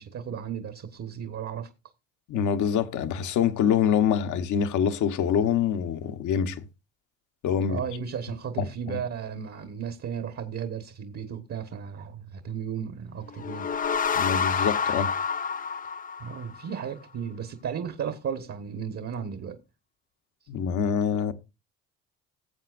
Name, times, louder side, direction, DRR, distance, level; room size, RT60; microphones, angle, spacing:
voice 1, 0.0-1.7 7.7-13.7 16.2-19.6, right 7 dB, 45° right, 1.4 m, -34 dB
voice 2, 2.3-6.6 7.4-7.8 8.6-9.0 14.2-15.1 20.5-21.3, left 8 dB, 60° left, 1.1 m, -25 dB
sound 1, 13.3-16.8, left 6 dB, 25° left, 0.5 m, -28 dB
19.0 x 7.6 x 2.5 m
supercardioid pair, 80°, 33 cm